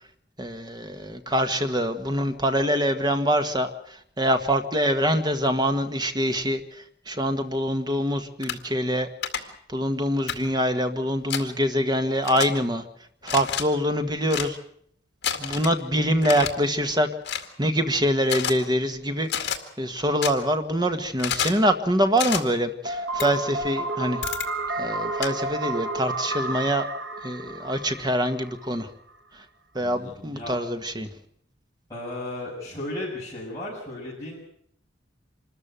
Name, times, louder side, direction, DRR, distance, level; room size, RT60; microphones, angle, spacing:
voice 1, 0.4-9.1 9.4-12.8 13.2-14.6 15.4-17.1 17.6-19.5 19.8-24.2 24.8-26.8 27.2-28.9 29.3-29.4 29.7-31.1, equal, 20° right, 7 dB, 1.6 m, -25 dB
sound 1, 8.4-8.6 9.2-9.4 10.3-10.4 11.3-11.4 12.2-12.5 13.2-13.6 14.3-14.5 15.2-15.7 16.2-16.5 17.2-17.5 18.3-18.5 19.3-19.6 20.2-20.3 21.2-21.6 22.2-22.4 23.2-23.3 24.2-24.5 25.2-25.3, left 8 dB, 60° left, 2.2 m, -28 dB
sound 2, 22.9-28.7, right 2 dB, 70° right, 1.8 m, -31 dB
voice 2, 29.8-30.5 31.9-34.4, left 1 dB, 20° left, -8 dB, 6.7 m, -35 dB
25.5 x 14.0 x 9.0 m, 0.68 s
head